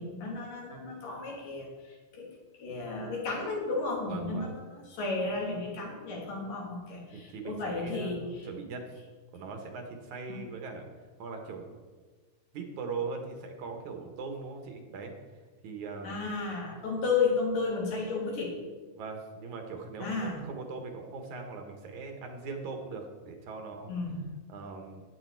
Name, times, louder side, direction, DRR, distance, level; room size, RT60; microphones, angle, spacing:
voice 1, 0.0-2.3 2.6-4.6 5.0-8.5 10.3-10.4 16.0-18.6 20.0-20.4 23.9-24.2, left 4 dB, 80° left, -2 dB, 4.6 m, -33 dB
voice 2, 4.1-4.5 7.1-8.9 9.3-10.9 11.2-11.9 12.5-16.1 18.9-23.9 24.5-25.0, right 4 dB, 70° right, 4 dB, 2.8 m, -40 dB
14.0 x 10.0 x 4.8 m, 1.3 s
omnidirectional pair, 3.7 m